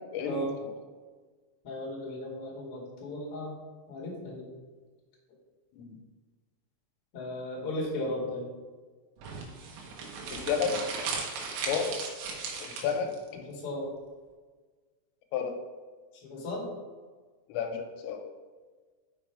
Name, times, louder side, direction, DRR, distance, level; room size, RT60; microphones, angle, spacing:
voice 1, 0.1-0.7 5.7-6.0 10.3-10.8 11.4-12.0 12.6-13.1 15.3-15.6 17.5-18.2, left 6 dB, 90° left, 4 dB, 3.5 m, -32 dB
voice 2, 1.6-3.5 3.9-4.5 7.1-8.4 12.8-12.9 13.5-13.9 16.2-16.7, left 1 dB, 45° left, -4 dB, 2.1 m, -36 dB
sound 1, 9.2-13.2, right 4 dB, 75° right, 3.5 m, -37 dB
7.0 x 6.0 x 4.7 m, 1.4 s
omnidirectional pair, 5.8 m